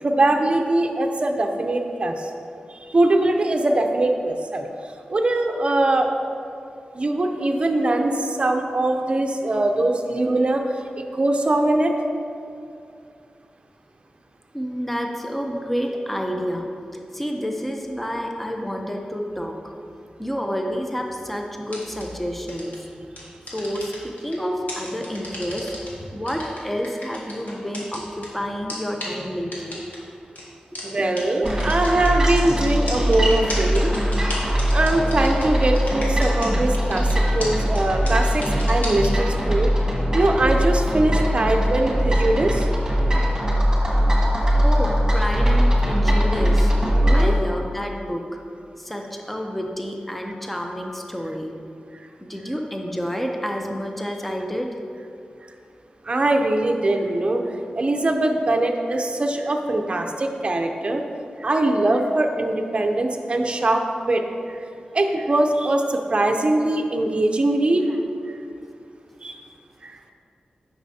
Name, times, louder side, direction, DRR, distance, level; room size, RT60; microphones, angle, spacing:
voice 1, 0.0-2.3 2.7-6.1 6.9-11.9 30.8-33.9 34.5-39.7 40.1-42.7 47.0-47.4 51.9-52.1 56.0-61.0 61.4-64.2 64.5-64.6 64.9-67.9 68.3-68.4 69.2-69.4 69.8-70.0, right 2 dB, 40° right, 3 dB, 0.6 m, -22 dB
voice 2, 14.5-19.7 20.2-22.7 23.5-29.8 44.6-46.7 47.1-48.2 48.8-51.5 52.2-54.7, equal, 5° left, 2 dB, 0.6 m, -29 dB
sound 1, 21.7-22.0 22.5-22.8 23.2-24.3 24.7-25.9 26.3-28.3 28.7-28.8 29.0-29.1 29.5-30.0 30.4-30.5 30.8-30.9 31.2-31.3 31.5-32.4 32.9-36.5 36.7-37.1 37.4-37.5 37.8-37.9 38.1-39.1, left 2 dB, 70° left, 1.6 m, -34 dB
sound 2, 31.4-47.3, equal, 20° right, 1.4 m, -21 dB
9.6 x 6.0 x 2.8 m, 2.5 s
wide cardioid pair, 85°, 3 cm